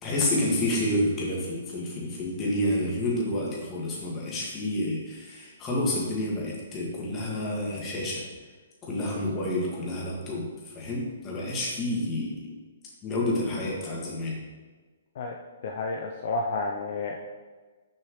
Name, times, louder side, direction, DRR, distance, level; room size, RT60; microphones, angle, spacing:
voice 1, 0.0-8.2 8.8-12.5 13.0-14.4, left 1 dB, 25° left, -4 dB, 1.9 m, -29 dB
voice 2, 15.6-17.2, left 3 dB, 55° left, 1 dB, 0.6 m, -31 dB
6.5 x 5.6 x 3.2 m, 1.4 s
hypercardioid pair, 135°, 0 cm